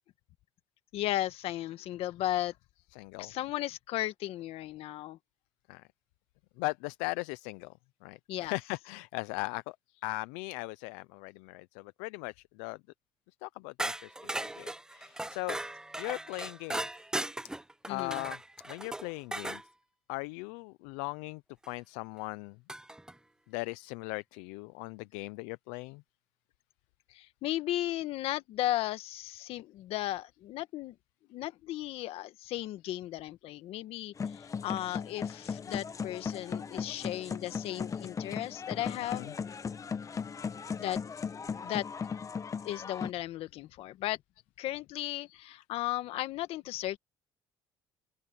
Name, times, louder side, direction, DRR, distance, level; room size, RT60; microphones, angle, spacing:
voice 1, 0.9-2.5 3.2-5.2 8.3-8.6 17.9-18.3 27.1-30.9 31.3-39.3 40.8-41.0 41.6-41.9 42.6-44.2 44.6-47.0, left 14 dB, 70° left, 1.6 m, -35 dB
voice 2, 2.9-3.3 5.7-5.9 6.6-7.7 8.0-12.8 13.4-15.6 16.0-16.9 17.9-18.4 18.7-19.6 20.1-21.4 21.7-22.6 23.5-26.0 39.1-39.3 45.3-45.5, left 24 dB, 90° left, 0.5 m, -39 dB
sound 1, 13.8-19.6 21.6-21.7 22.7-23.1, right 1 dB, 5° right, 0.6 m, -38 dB
sound 2, 34.2-43.1, left 6 dB, 30° left, 1.0 m, -37 dB
open air
supercardioid pair, 85°, 10 cm